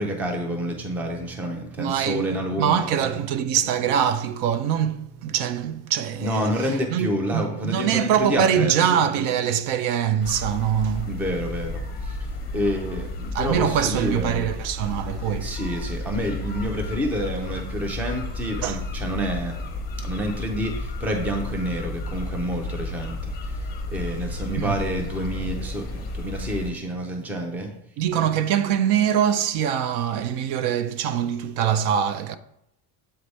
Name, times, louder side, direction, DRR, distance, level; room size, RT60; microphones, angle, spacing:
voice 1, 0.0-3.1 6.2-9.0 11.0-12.3 12.5-14.5 15.4-19.6 20.0-27.7, equal, 5° right, 0.4 m, -29 dB
voice 2, 1.8-11.1 13.3-15.5 18.6-18.8 24.6-24.7 28.0-32.4, right 9 dB, 60° right, 0.5 m, -23 dB
sound 1, 10.2-26.7, left 2 dB, 20° left, 0.9 m, -32 dB
7.8 x 3.3 x 4.0 m
cardioid pair, 155°, 47 cm